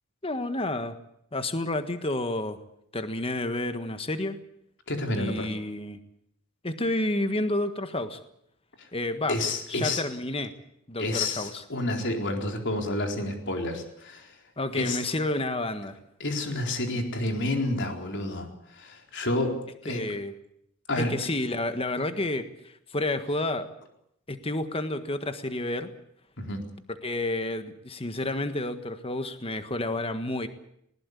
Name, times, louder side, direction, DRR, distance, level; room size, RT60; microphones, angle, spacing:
voice 1, 0.2-1.0 1.3-2.6 2.9-4.4 5.1-6.0 6.6-8.2 8.9-9.4 9.7-10.5 10.9-11.6 14.6-16.0 19.8-20.3 21.0-23.7 24.3-25.9 27.0-30.5, left 2 dB, 25° left, 9 dB, 1.6 m, -30 dB
voice 2, 4.9-5.5 8.8-8.9 9.3-10.0 11.0-14.3 14.7-15.0 16.2-18.5 18.7-19.6 19.8-20.0 20.9-21.1 26.4-26.7, left 2 dB, 55° left, 3 dB, 4.2 m, -29 dB
20.5 x 19.5 x 8.3 m, 0.72 s
head